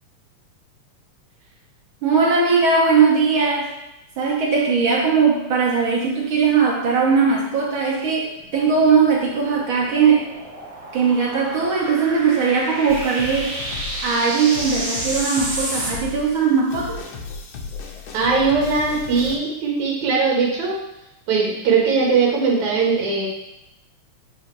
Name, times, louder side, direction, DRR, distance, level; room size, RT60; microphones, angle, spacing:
voice 1, 2.0-3.7 4.2-10.3 10.9-13.6 14.0-17.0, right 5 dB, 60° right, -3 dB, 1.5 m, -19 dB
sound 1, 8.4-15.9, right 1 dB, 35° right, 1.3 m, -31 dB
sound 2, 12.9-19.4, left 4 dB, 85° left, 1.0 m, -35 dB
voice 2, 18.1-20.8 21.3-23.3, right 4 dB, 75° right, -4 dB, 2.5 m, -20 dB
8.2 x 3.4 x 4.6 m, 0.88 s
omnidirectional pair, 3.3 m